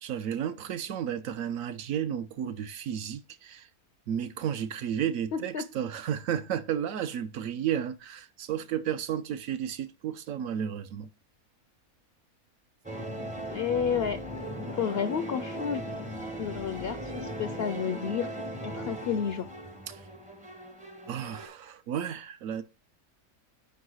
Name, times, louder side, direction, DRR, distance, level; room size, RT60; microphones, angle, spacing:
voice 1, 0.0-3.7 4.1-11.1 19.9-20.1 21.1-22.6, right 9 dB, 70° right, 0.9 m, -33 dB
voice 2, 5.3-5.6 13.5-14.2 14.7-15.8 16.4-18.3 18.6-19.5, left 7 dB, 65° left, 0.6 m, -30 dB
sound 1, 12.8-21.5, equal, 10° right, 0.4 m, -38 dB
4.8 x 4.7 x 6.1 m
omnidirectional pair, 1.5 m